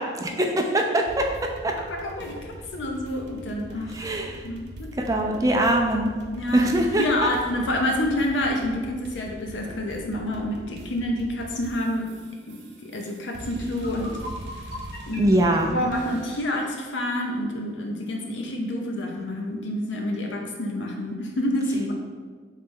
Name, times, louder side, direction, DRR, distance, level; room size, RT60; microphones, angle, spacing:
voice 1, 0.0-1.8 3.9-4.4 5.0-6.1 6.5-7.1 15.2-15.7, right 1 dB, 20° right, 2 dB, 0.3 m, -23 dB
sound 1, 1.1-16.6, right 1 dB, 70° right, 0.6 m, -42 dB
voice 2, 1.8-3.9 4.4-5.1 6.3-6.7 7.0-12.1 12.5-14.2 15.1-15.3 15.6-21.9, left 1 dB, 90° left, 1 dB, 0.7 m, -28 dB
sound 2, 13.7-16.8, left 1 dB, 55° left, 1.1 m, -41 dB
3.9 x 3.3 x 3.6 m, 1.5 s
head